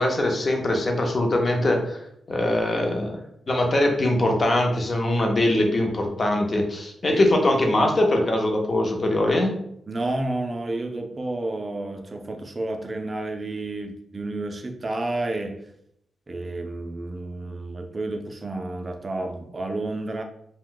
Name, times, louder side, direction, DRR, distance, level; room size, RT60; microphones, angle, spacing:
voice 1, 0.0-2.0 2.3-9.5, left 1 dB, 30° left, 2 dB, 0.5 m, -22 dB
voice 2, 9.9-15.7 16.3-20.2, right 2 dB, 25° right, 5 dB, 0.3 m, -30 dB
2.7 x 2.1 x 3.7 m, 0.73 s
wide cardioid pair, 150°, 0 cm